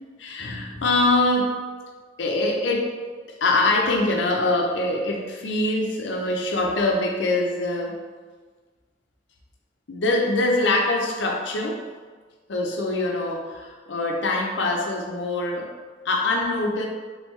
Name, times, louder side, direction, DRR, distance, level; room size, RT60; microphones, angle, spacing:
voice 1, 0.2-1.6 2.2-8.0 9.9-11.8 12.5-15.7 16.0-16.8, left 2 dB, 80° left, 1 dB, 0.6 m, -24 dB
3.4 x 3.1 x 3.5 m, 1.4 s
head